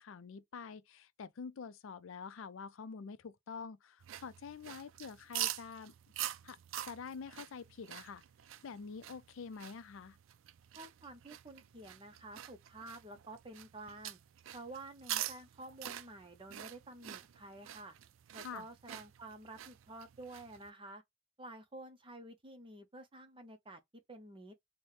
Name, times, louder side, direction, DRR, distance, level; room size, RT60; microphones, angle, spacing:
voice 1, 0.0-5.9 6.4-6.6 6.9-8.2 8.6-10.2 18.4-18.7, left 5 dB, 75° left, 0.4 m, -47 dB
sound 1, 4.0-20.7, right 12 dB, 70° right, 0.3 m, -46 dB
voice 2, 10.7-14.2 14.5-17.9 18.3-21.0 21.4-23.8 24.1-24.5, right 2 dB, 25° right, 0.7 m, -50 dB
4.1 x 2.2 x 3.2 m
head